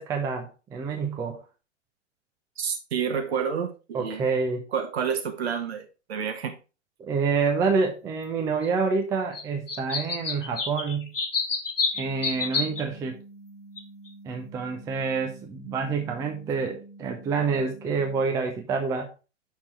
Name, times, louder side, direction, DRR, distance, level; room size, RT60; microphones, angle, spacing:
voice 1, 0.0-1.4 3.9-4.6 7.0-11.1 11.9-13.2 14.3-19.1, right 5 dB, 10° right, 0.5 m, -27 dB
voice 2, 2.6-4.2 4.7-6.6, right 7 dB, 55° right, 1.4 m, -29 dB
sound 1, 8.6-8.7 9.3-9.4 9.7-12.8 13.8-13.9 14.1-14.2, left 4 dB, 80° left, 1.3 m, -28 dB
sound 2, 11.9-18.2, right 2 dB, 45° left, 1.4 m, -48 dB
6.1 x 4.3 x 4.4 m
figure-of-eight pair, 105°, 37 cm